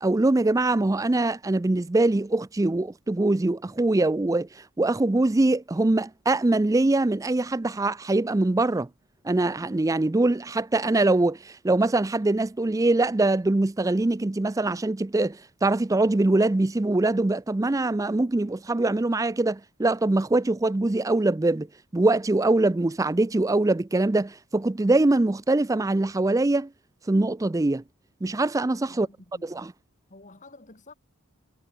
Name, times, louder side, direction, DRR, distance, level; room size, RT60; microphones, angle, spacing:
voice 1, 0.0-8.9 9.2-21.7 21.9-26.7 27.1-27.8 28.2-29.1 29.4-29.7, right 2 dB, 15° right, 0.4 m, -23 dB
voice 2, 29.0-29.6 30.1-30.9, left 2 dB, 35° left, 2.4 m, -50 dB
head